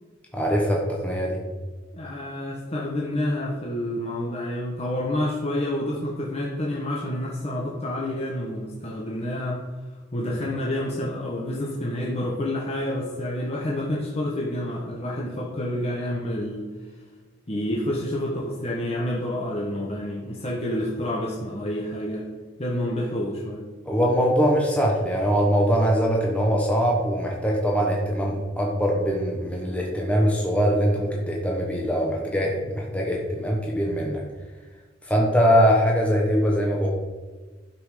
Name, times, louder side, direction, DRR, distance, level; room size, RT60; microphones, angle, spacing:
voice 1, 0.3-1.4 23.8-34.2 35.1-36.9, equal, 5° left, -2 dB, 1.3 m, -22 dB
voice 2, 1.9-9.6 10.1-16.7 17.5-22.3 22.6-23.7, left 1 dB, 30° left, -3 dB, 1.3 m, -28 dB
11.5 x 6.0 x 5.1 m, 1.3 s
head